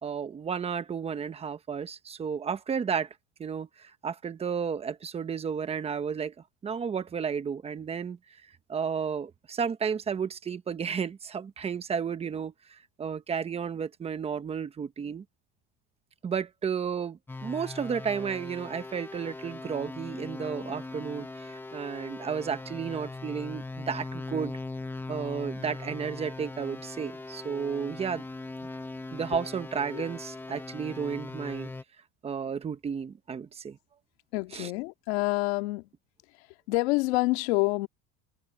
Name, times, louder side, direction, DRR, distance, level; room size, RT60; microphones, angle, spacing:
voice 1, 0.0-3.1 3.4-6.3 6.6-8.2 8.7-15.2 16.2-24.6 25.1-28.2 29.1-31.7 32.2-33.8 34.5-34.7, right 6 dB, 20° right, 1.0 m, -32 dB
sound 1, 17.3-31.8, left 3 dB, 5° left, 0.9 m, -40 dB
voice 2, 34.3-35.9 36.7-37.9, left 22 dB, 85° left, 2.3 m, -27 dB
cardioid pair, 150°, 32 cm